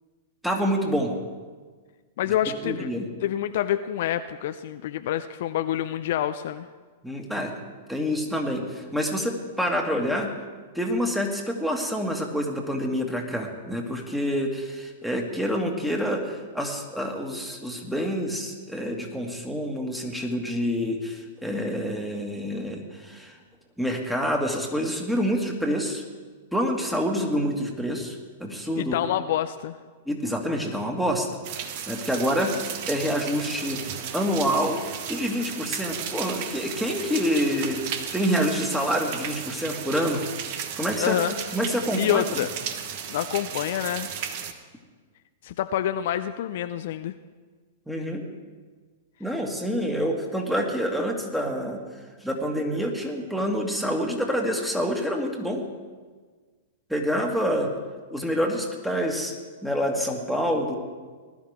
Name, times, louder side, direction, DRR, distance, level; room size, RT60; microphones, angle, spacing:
voice 1, 0.4-1.1 2.6-3.1 7.0-7.5 7.9-10.3 10.7-23.4 23.8-26.0 26.5-29.0 30.1-31.3 31.9-34.8 35.1-40.3 40.8-42.2 47.9-48.2 49.2-51.8 52.2-55.7 56.9-57.7 58.1-59.3 59.6-60.8, equal, ahead, 1 dB, 2.0 m, -27 dB
voice 2, 2.2-2.9 3.2-6.7 28.8-29.8 41.0-41.3 41.9-42.5 43.1-44.1 45.4-47.1, left 11 dB, 55° left, 10 dB, 0.5 m, -27 dB
sound 1, 31.4-44.5, right 8 dB, 50° right, 1.2 m, -35 dB
19.5 x 12.0 x 3.6 m, 1.5 s
figure-of-eight pair, 105°, 0 cm